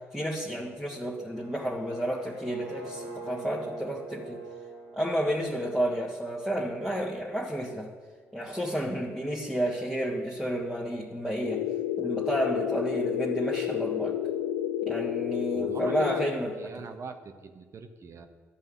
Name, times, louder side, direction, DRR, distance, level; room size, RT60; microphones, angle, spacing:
voice 1, 0.1-4.4 4.9-7.9 8.3-11.7 12.0-14.2 14.9-16.5, equal, 5° left, -4 dB, 1.9 m, -31 dB
sound 1, 1.2-7.2, right 3 dB, 75° right, 2.9 m, -45 dB
sound 2, 11.4-16.3, left 11 dB, 65° left, 0.5 m, -30 dB
voice 2, 15.5-18.3, right 4 dB, 40° right, 6 dB, 1.3 m, -42 dB
13.5 x 5.5 x 8.2 m, 1.5 s
figure-of-eight pair, 45°, 7 cm